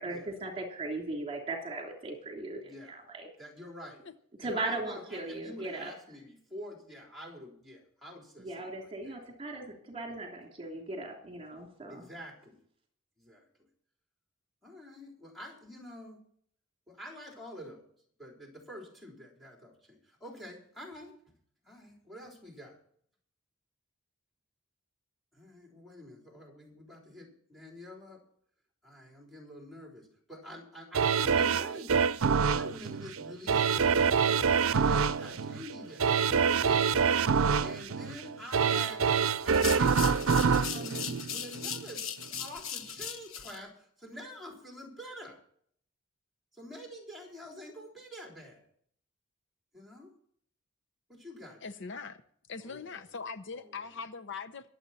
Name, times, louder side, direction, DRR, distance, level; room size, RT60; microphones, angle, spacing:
voice 1, 0.0-3.3 4.4-5.9 8.4-12.0, right 2 dB, 30° right, 3.1 m, -38 dB
voice 2, 2.6-3.0 3.4-4.1 4.4-9.2 11.9-12.6 13.2-13.7 14.6-16.2 16.9-17.9 18.2-21.2 21.6-22.8 25.3-28.2 28.8-32.1 32.3-34.2 34.7-45.4 46.5-48.6 49.7-50.1 51.1-51.6 52.6-53.1 53.5-53.8, equal, ahead, 3.7 m, -47 dB
sound 1, 30.9-41.9 42.3-42.4, right 6 dB, 85° right, 0.6 m, -26 dB
sound 2, 39.5-43.6, left 8 dB, 80° left, 1.2 m, -38 dB
voice 3, 51.6-52.2 52.5-54.7, left 5 dB, 60° left, 0.8 m, -41 dB
23.0 x 8.0 x 4.2 m
head